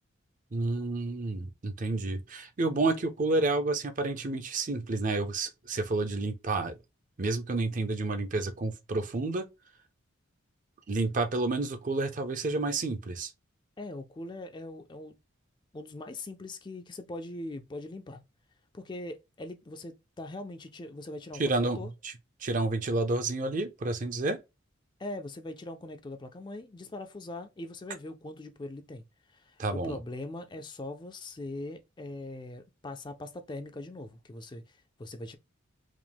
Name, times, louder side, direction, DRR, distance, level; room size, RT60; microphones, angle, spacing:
voice 1, 0.5-6.8 7.2-9.5 10.9-13.3 21.4-22.1 22.4-24.4 29.6-30.0, right 2 dB, 40° right, 0.5 m, -30 dB
voice 2, 13.8-15.2 15.7-18.2 18.7-21.9 25.0-29.0 29.3-35.4, left 2 dB, 20° left, 0.4 m, -41 dB
4.9 x 2.0 x 3.4 m
head